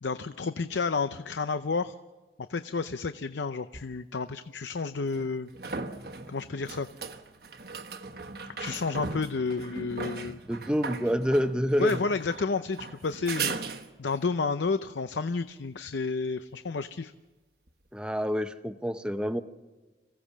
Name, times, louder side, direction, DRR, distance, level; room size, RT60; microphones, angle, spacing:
voice 1, 0.0-1.9 2.5-5.5 6.3-6.9 8.6-10.4 11.8-17.1, left 4 dB, 80° left, 11 dB, 0.6 m, -31 dB
sound 1, 3.7-3.8 5.1-14.3 17.7-17.8, right 4 dB, 55° right, 1.3 m, -38 dB
voice 2, 10.5-12.0 17.9-19.4, equal, 5° right, 9 dB, 0.8 m, -27 dB
26.5 x 16.5 x 7.3 m, 1.2 s
head